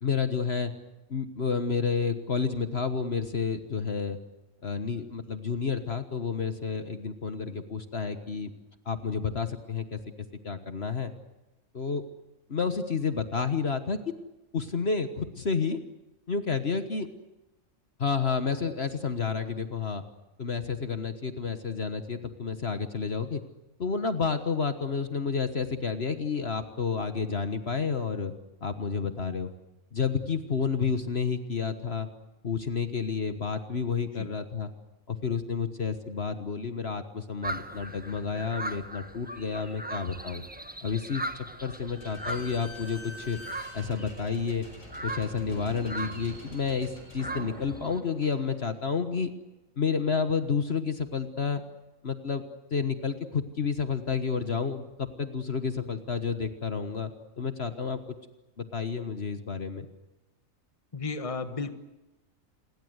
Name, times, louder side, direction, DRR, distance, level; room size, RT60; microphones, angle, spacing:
voice 1, 0.0-0.7 1.1-4.2 4.6-8.5 8.8-10.0 10.4-11.1 11.7-12.0 12.5-14.0 14.5-15.8 16.3-17.1 18.0-20.0 20.4-23.4 23.8-28.3 28.6-29.5 29.9-32.1 32.4-34.7 35.1-40.4 40.8-41.2 41.6-43.4 43.7-44.7 45.0-49.3 49.8-51.6 52.0-52.4 52.7-58.0 58.6-59.9, left 5 dB, 50° left, 9 dB, 1.6 m, -30 dB
sound 1, 37.4-48.0, right 2 dB, 5° right, 1.3 m, -40 dB
Slam / Squeak, 41.7-49.0, equal, 70° left, 6.0 m, -46 dB
voice 2, 60.9-61.7, left 4 dB, 25° left, 9 dB, 1.5 m, -34 dB
28.0 x 22.0 x 8.1 m, 1.0 s
omnidirectional pair, 1.4 m